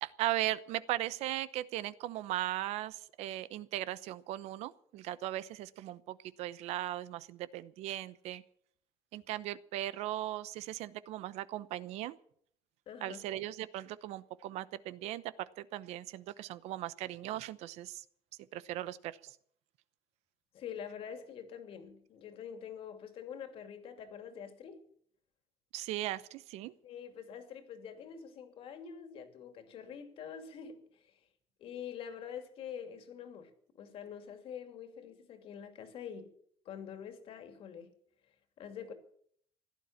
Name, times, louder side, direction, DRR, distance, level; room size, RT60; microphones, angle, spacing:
voice 1, 0.0-8.4 9.1-12.2 13.0-18.0 18.5-19.4 25.7-26.7, right 14 dB, 80° right, 0.8 m, -38 dB
voice 2, 12.9-13.2 20.5-24.8 26.8-31.2 31.6-36.3 36.6-37.9 38.6-38.9, left 8 dB, 60° left, 2.6 m, -46 dB
16.0 x 11.5 x 7.3 m
cardioid pair, 145°, 11 cm